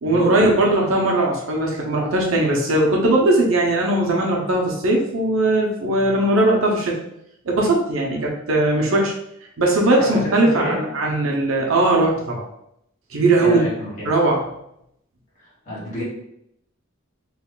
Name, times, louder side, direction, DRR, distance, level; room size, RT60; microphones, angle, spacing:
voice 1, 0.0-7.0 7.4-9.1 9.6-12.5 13.1-13.6 14.1-14.4, right 2 dB, 90° right, -1 dB, 0.7 m, -19 dB
voice 2, 10.0-10.8 13.4-14.1 15.4-16.0, equal, 40° left, -7 dB, 1.4 m, -29 dB
3.2 x 2.4 x 3.7 m, 0.76 s
head